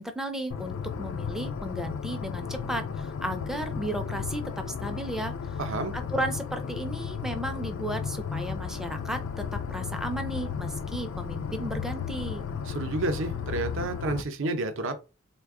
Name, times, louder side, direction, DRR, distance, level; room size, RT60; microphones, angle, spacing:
voice 1, 0.0-5.6 5.9-12.4, right 1 dB, ahead, 0.4 m, -34 dB
sound 1, 0.5-14.2, left 6 dB, 65° left, 0.3 m, -34 dB
voice 2, 5.6-5.9 12.7-15.0, right 2 dB, 60° right, 0.6 m, -30 dB
3.3 x 2.2 x 3.5 m
head